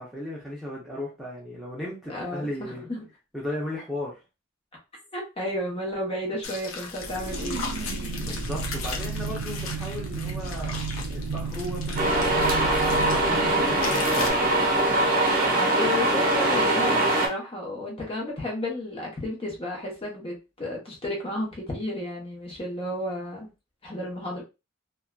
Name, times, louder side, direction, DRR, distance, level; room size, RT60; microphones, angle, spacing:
voice 1, 0.0-2.9 3.3-4.2 8.2-14.7, left 1 dB, ahead, -6 dB, 0.6 m, -36 dB
voice 2, 2.1-3.1 5.1-7.6 15.6-23.5 23.8-24.4, left 1 dB, 30° left, -2 dB, 0.9 m, -32 dB
sound 1, 6.4-13.2 13.8-14.3, left 5 dB, 80° left, 0.6 m, -37 dB
sound 2, 7.0-15.2, right 4 dB, 80° right, 0.3 m, -33 dB
sound 3, 12.0-17.3, right 1 dB, 45° right, 0.7 m, -22 dB
2.7 x 2.3 x 2.2 m, 0.27 s
head